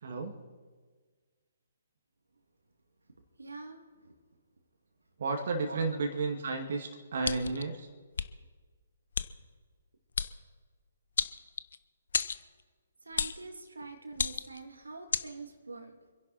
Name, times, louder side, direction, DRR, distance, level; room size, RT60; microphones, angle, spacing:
voice 1, 0.0-0.3 5.2-7.9, right 3 dB, 55° right, 3 dB, 2.0 m, -32 dB
voice 2, 3.4-4.1 5.7-6.0 13.0-16.1, right 3 dB, 75° right, 5 dB, 2.3 m, -45 dB
sound 1, 7.2-7.6 8.1-8.3 9.1-9.3 10.1-10.3 11.2-11.8 12.1-12.4 13.2-13.4 14.1-14.6 15.1-15.3, left 6 dB, 60° left, 0.7 m, -31 dB
27.5 x 11.0 x 4.3 m, 1.5 s
figure-of-eight pair, 135°, 0 cm